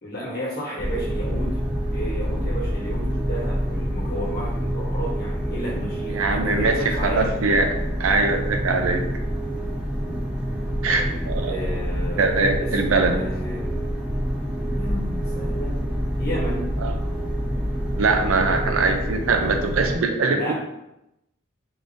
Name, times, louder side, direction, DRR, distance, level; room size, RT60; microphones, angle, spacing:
voice 1, 0.0-1.6 1.9-7.4 10.8-13.8 14.7-15.8 16.2-16.7 20.3-20.5, equal, 45° left, -5 dB, 1.2 m, -32 dB
sound 1, 0.8-19.9, equal, 10° right, 0.6 m, -27 dB
voice 2, 6.1-7.7 8.0-9.0 10.8-11.6 12.2-13.2 16.8-16.9 17.9-20.5, right 3 dB, 80° right, 5 dB, 0.5 m, -22 dB
3.7 x 2.6 x 3.3 m, 0.87 s
head